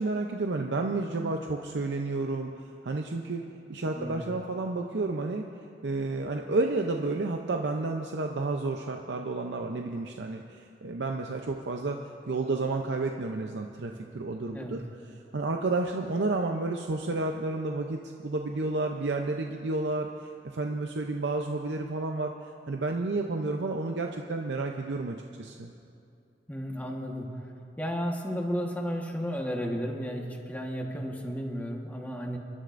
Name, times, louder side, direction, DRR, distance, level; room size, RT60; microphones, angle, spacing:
voice 1, 0.0-3.4 3.7-5.5 5.8-14.8 15.3-22.3 22.7-25.7, right 3 dB, 80° right, 3 dB, 0.6 m, -31 dB
voice 2, 26.5-32.4, equal, 10° left, 1 dB, 1.3 m, -33 dB
29.5 x 11.0 x 2.6 m, 2.5 s
head